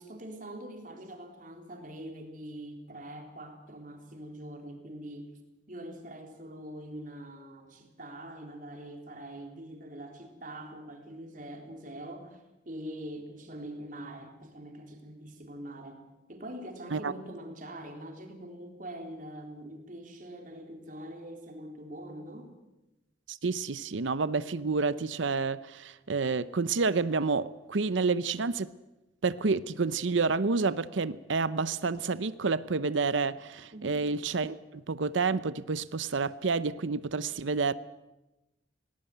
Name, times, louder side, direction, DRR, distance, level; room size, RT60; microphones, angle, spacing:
voice 1, 0.0-5.3 5.7-22.6 33.7-33.9, right 1 dB, 45° right, 4 dB, 3.8 m, -44 dB
voice 2, 23.3-28.7 29.2-37.7, right 4 dB, 90° right, 16 dB, 0.7 m, -29 dB
20.0 x 18.5 x 9.3 m, 0.99 s
head